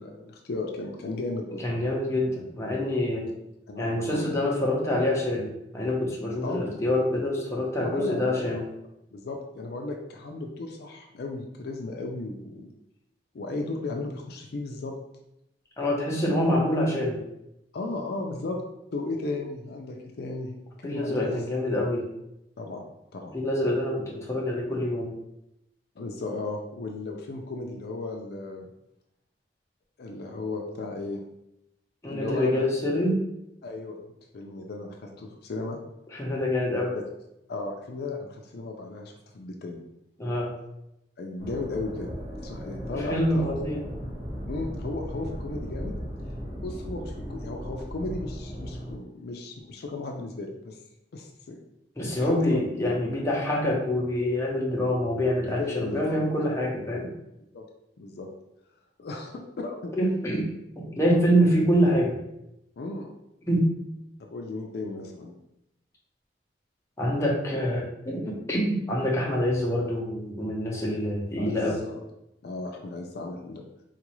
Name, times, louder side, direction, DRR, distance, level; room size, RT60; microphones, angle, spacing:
voice 1, 0.0-1.6 3.7-4.2 6.4-6.8 7.8-8.6 9.1-12.7 13.3-14.9 17.7-18.6 18.9-20.6 20.8-21.4 22.6-22.8 23.1-23.4 26.0-28.7 30.0-31.2 32.1-32.7 33.6-34.0 34.3-35.8 37.5-39.8 41.2-42.1 42.4-43.5 44.5-45.9 46.6-50.8 51.1-51.6 52.2-52.6 55.6-56.2 57.5-57.7 58.0-58.3 59.0-59.9 61.3-61.4 62.8-63.1 64.2-65.3 71.4-72.0 72.4-73.6, left 2 dB, 60° left, 2 dB, 0.4 m, -35 dB
voice 2, 1.6-3.3 3.8-8.6 15.8-17.2 20.8-22.0 23.3-25.1 32.0-33.2 36.2-36.9 40.2-40.5 42.9-43.8 52.0-57.1 60.0-62.2 63.5-63.7 67.0-71.8, equal, 15° left, -3 dB, 0.7 m, -26 dB
sound 1, 41.4-49.0, equal, 55° right, 1.0 m, -37 dB
3.8 x 2.4 x 3.0 m, 0.86 s
head